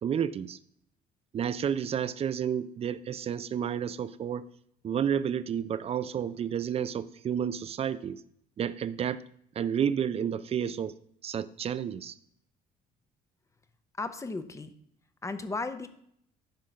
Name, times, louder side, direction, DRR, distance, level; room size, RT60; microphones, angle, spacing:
voice 1, 0.0-0.6 1.3-4.4 4.8-8.2 8.6-9.2 9.6-10.9 11.2-12.1, right 8 dB, 35° right, 15 dB, 0.4 m, -31 dB
voice 2, 14.0-14.7 15.2-15.9, left 3 dB, 20° left, 10 dB, 0.7 m, -35 dB
10.5 x 3.8 x 5.6 m, 0.68 s
cardioid pair, 110°, 17 cm